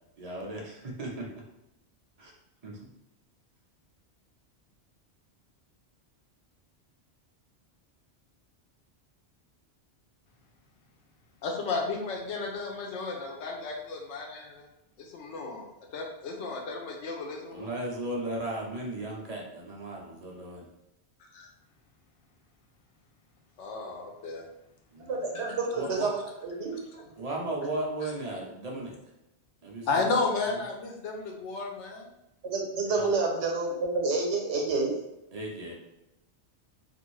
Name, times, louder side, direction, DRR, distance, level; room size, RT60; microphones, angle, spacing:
voice 1, 0.2-1.3 2.2-2.3 2.6-2.8 17.5-20.7 24.9-25.2 25.7-26.1 27.2-28.9 29.6-30.0 32.9-33.1 35.3-35.7, right 1 dB, 50° right, -2 dB, 0.5 m, -36 dB
voice 2, 11.4-14.7 15.0-17.7 21.3-21.5 23.6-24.5 29.9-32.1, left 3 dB, 90° left, 1 dB, 0.9 m, -33 dB
voice 3, 25.0-27.1 32.4-35.0, right 3 dB, 80° right, 0 dB, 1.0 m, -29 dB
2.5 x 2.5 x 3.0 m, 0.88 s
omnidirectional pair, 1.2 m